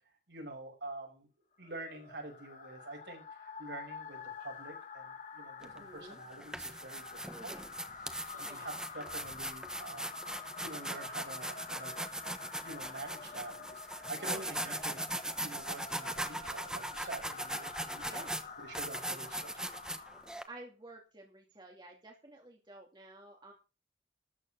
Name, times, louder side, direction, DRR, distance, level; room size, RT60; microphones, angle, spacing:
voice 1, 0.3-1.3 1.6-7.5 8.3-10.1 10.6-11.9 12.5-15.0 15.4-18.3 18.6-19.8, right 2 dB, 70° right, 1 dB, 5.9 m, -47 dB
sound 1, 1.6-20.5, left 5 dB, 45° left, 1.4 m, -48 dB
sound 2, 5.6-5.8 6.3-20.4, right 1 dB, 5° right, 1.1 m, -40 dB
voice 2, 5.6-6.2 7.3-7.7 8.4-8.7 14.2-14.8 18.0-18.3 20.5-23.5, right 2 dB, 25° right, 0 dB, 2.7 m, -51 dB
13.5 x 8.2 x 5.9 m, 0.32 s
head